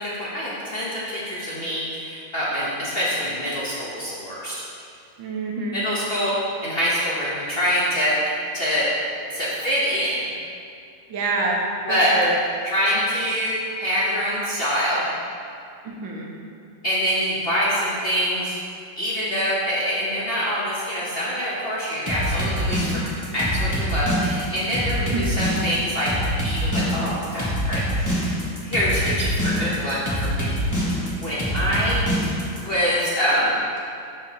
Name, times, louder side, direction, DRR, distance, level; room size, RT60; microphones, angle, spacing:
voice 1, 0.0-4.6 5.7-8.9 9.3-10.2 11.8-12.2 12.6-15.1 16.8-18.6 19.0-23.1 23.3-26.1 26.4-28.4 28.6-30.5 31.2-32.1 32.5-33.6, equal, 40° left, -8 dB, 0.9 m, -25 dB
voice 2, 5.2-5.8 11.1-11.6 11.9-12.3 15.8-16.3 25.0-25.2, right 3 dB, 75° right, -1 dB, 1.7 m, -26 dB
sound 1, 22.1-32.6, equal, 15° left, 0.9 m, -25 dB
11.5 x 5.1 x 2.8 m, 2.4 s
omnidirectional pair, 2.1 m